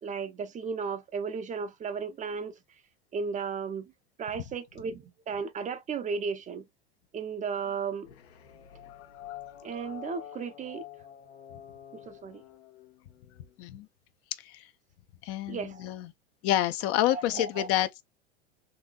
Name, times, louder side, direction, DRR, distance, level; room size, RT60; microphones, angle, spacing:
voice 1, 0.0-2.6 3.1-3.9 4.2-6.7 7.1-8.1 9.6-10.8 11.9-12.4 15.5-15.9 17.1-17.7, right 5 dB, 25° right, 0.6 m, -35 dB
sound 1, 8.0-13.5, left 11 dB, 80° left, 1.0 m, -47 dB
voice 2, 9.0-9.4 13.6-13.9 14.4-14.7 15.2-16.1 16.4-18.0, left 13 dB, 45° left, 0.6 m, -29 dB
4.0 x 2.6 x 2.3 m
hypercardioid pair, 100°, 32 cm